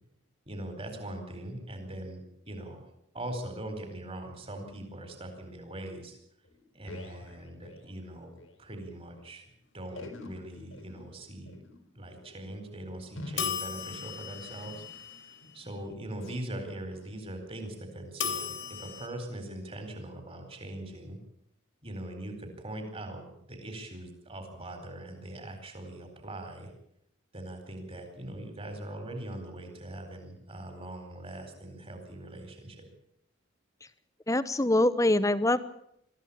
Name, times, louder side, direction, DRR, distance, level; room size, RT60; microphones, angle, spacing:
voice 1, 0.5-2.9 3.1-6.2 6.7-8.3 8.6-9.4 9.7-11.6 11.9-21.2 21.8-26.7 27.3-32.9, right 1 dB, 30° right, 6 dB, 4.3 m, -41 dB
sound 1, 6.4-8.6 8.9-9.0 9.1-9.3 9.9-15.0 15.4-15.7 16.1-16.4 16.9-17.2 17.7-17.8 18.5-18.6, left 2 dB, 85° left, 4.3 m, -48 dB
sound 2, 13.4-15.6 18.2-19.1, left 7 dB, 60° left, 3.1 m, -36 dB
voice 2, 34.3-35.6, left 1 dB, 15° left, 14 dB, 0.9 m, -24 dB
22.5 x 14.5 x 8.6 m, 0.74 s
head